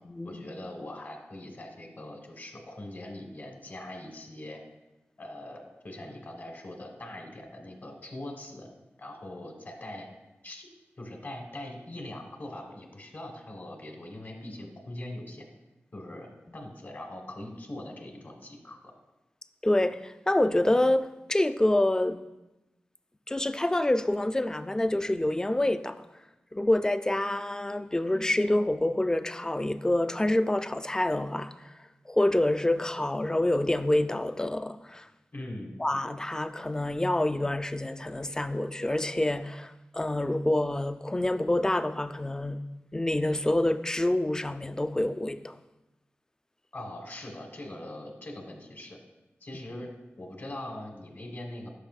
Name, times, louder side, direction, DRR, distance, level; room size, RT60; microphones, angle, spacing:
voice 1, 0.2-4.6 5.2-8.7 9.0-10.1 10.4-10.7 11.0-15.4 15.9-18.9 35.3-35.8 46.7-49.0 49.4-49.9 50.2-51.7, left 1 dB, 50° left, 1.3 m, -42 dB
voice 2, 19.6-22.2 23.3-26.0 26.5-31.5 32.1-35.1 35.8-42.6 42.9-45.6, left 1 dB, 15° left, 0.4 m, -27 dB
Sigh, 27.9-28.6, left 1 dB, 75° left, 1.0 m, -49 dB
11.5 x 5.7 x 2.4 m
wide cardioid pair, 70°, 4 cm